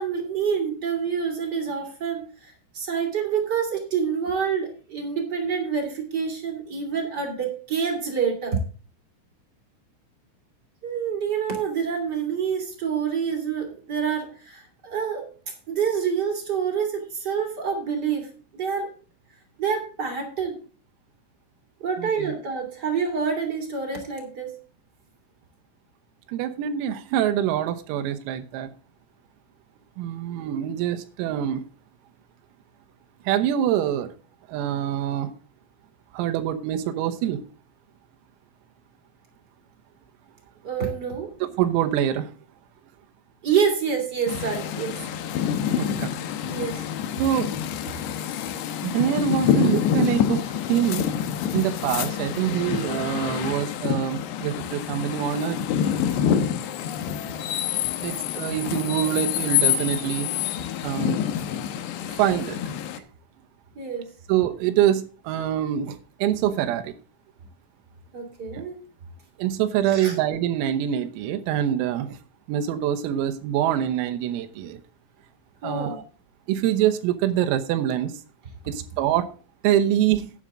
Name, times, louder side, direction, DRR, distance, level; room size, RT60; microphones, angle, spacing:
voice 1, 0.0-8.6 10.8-18.9 19.6-20.6 21.8-24.6 40.6-41.3 43.4-45.0 46.5-46.9 63.7-64.1 68.1-68.8 69.9-70.2 75.6-76.0, right 6 dB, 30° right, 2.2 m, -27 dB
voice 2, 22.0-22.3 26.3-28.7 30.0-31.7 33.3-34.1 34.5-35.3 36.1-37.4 41.6-42.3 45.8-46.1 47.2-47.5 48.8-50.4 50.7-51.1 51.5-55.7 58.0-60.3 60.8-61.2 62.2-62.6 64.3-66.9 68.5-68.6 69.4-72.2 72.5-74.8 75.6-76.0 76.5-78.1 78.7-79.3 79.6-80.3, right 11 dB, 90° right, 3.8 m, -25 dB
sound 1, 44.3-63.0, left 9 dB, 75° left, 2.7 m, -27 dB
11.5 x 9.7 x 3.7 m
omnidirectional pair, 6.0 m